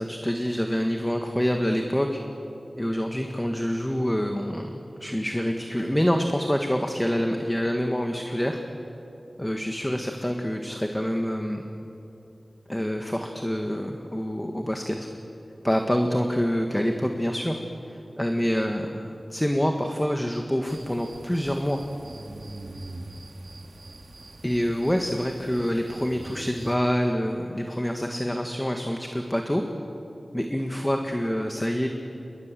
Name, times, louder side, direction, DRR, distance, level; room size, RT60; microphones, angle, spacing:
voice 1, 0.0-2.2 2.8-8.6 9.4-11.6 12.7-15.0 15.6-17.6 17.9-21.8 24.4-29.6 30.3-31.9, equal, 10° left, 3 dB, 1.8 m, -26 dB
sound 1, 20.7-26.8, right 2 dB, 60° right, 2.6 m, -43 dB
29.0 x 22.0 x 7.7 m, 2.8 s
wide cardioid pair, 65°, 0 cm